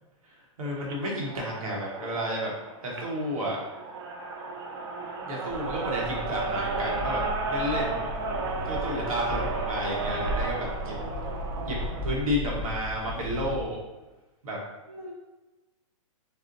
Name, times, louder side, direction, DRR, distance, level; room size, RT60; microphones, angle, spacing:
voice 1, 0.3-2.5 2.8-3.6 5.3-8.0 8.6-10.9 11.7-13.8 14.4-14.6 14.9-15.1, equal, 85° right, -2 dB, 0.9 m, -32 dB
sound 1, 0.8-12.2, right 3 dB, 45° right, 0.4 m, -34 dB
sound 2, 5.5-13.7, left 1 dB, 30° left, 0.5 m, -36 dB
4.0 x 2.0 x 2.5 m, 1.1 s
hypercardioid pair, 155°, 18 cm